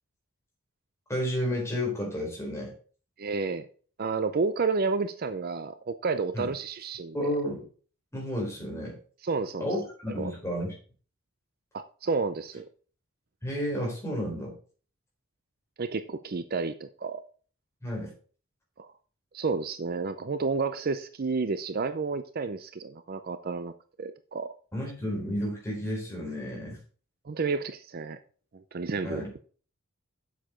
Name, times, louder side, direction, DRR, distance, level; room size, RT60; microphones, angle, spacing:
voice 1, 1.1-2.7 6.3-6.5 7.1-7.6 8.1-9.0 9.6-10.7 13.4-14.5 17.8-18.1 24.7-26.8 29.0-29.3, equal, 15° left, -2 dB, 4.2 m, -31 dB
voice 2, 3.2-3.7 4.0-7.4 9.2-9.7 10.2-10.3 11.7-12.7 15.8-17.2 18.8-18.9 19.3-23.7 24.0-24.5 27.2-28.2 28.5-29.2, right 4 dB, 45° right, 11 dB, 0.5 m, -31 dB
7.7 x 6.6 x 5.1 m, 0.41 s
head